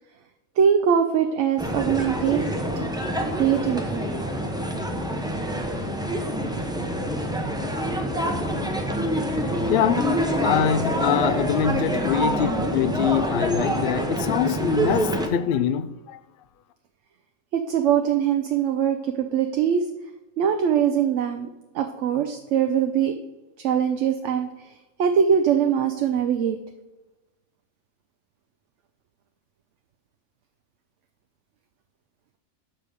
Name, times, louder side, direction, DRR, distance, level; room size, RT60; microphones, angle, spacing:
voice 1, 0.6-2.4 3.4-4.0 17.5-19.8 20.4-21.5 21.7-23.1 23.6-24.5 25.0-26.6, right 8 dB, 65° right, 0.9 m, -22 dB
sound 1, 1.6-15.3, equal, 5° right, 0.6 m, -26 dB
voice 2, 9.7-10.1 10.4-16.2, left 8 dB, 65° left, 0.5 m, -24 dB
7.5 x 5.1 x 6.4 m
omnidirectional pair, 1.4 m